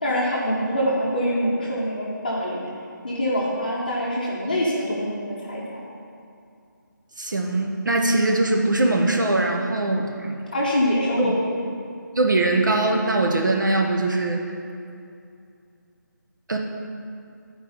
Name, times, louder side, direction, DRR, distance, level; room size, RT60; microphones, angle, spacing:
voice 1, 0.0-2.6 3.0-5.8 10.5-11.4, equal, 25° left, -6 dB, 0.9 m, -24 dB
voice 2, 7.2-10.3 11.2-11.4 12.2-14.4 16.5-16.6, right 2 dB, 70° right, 2 dB, 0.9 m, -21 dB
9.7 x 4.6 x 5.4 m, 2.5 s
figure-of-eight pair, 180°, 11 cm